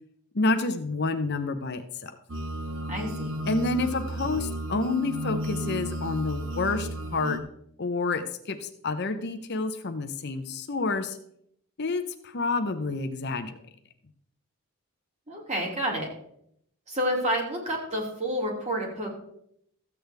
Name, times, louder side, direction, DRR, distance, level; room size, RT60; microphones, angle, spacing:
voice 1, 0.3-2.2 3.5-7.4 7.8-11.2 11.8-13.6, left 3 dB, 50° left, 8 dB, 0.7 m, -29 dB
sound 1, 2.3-7.4, equal, 60° right, 1.1 m, -33 dB
voice 2, 2.9-3.3 15.3-16.1 16.9-19.1, equal, 30° right, -1 dB, 2.8 m, -29 dB
14.0 x 8.6 x 3.4 m, 0.72 s
head